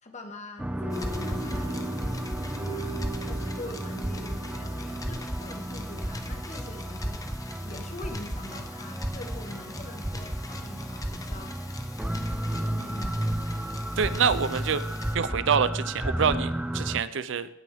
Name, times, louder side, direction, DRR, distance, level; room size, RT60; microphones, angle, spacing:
voice 1, 0.0-2.0 2.6-3.0 3.3-7.2 7.6-11.6 12.5-13.5, left 1 dB, 35° left, 4 dB, 1.4 m, -43 dB
sound 1, 0.6-17.0, right 1 dB, 5° right, 0.4 m, -33 dB
sound 2, 0.7-7.0, right 2 dB, 45° right, 3.9 m, -40 dB
sound 3, 0.9-15.2, left 2 dB, 20° left, 0.8 m, -43 dB
voice 2, 14.0-14.8 15.1-17.5, right 6 dB, 70° right, 14 dB, 0.5 m, -26 dB
17.0 x 6.2 x 3.5 m, 0.85 s
head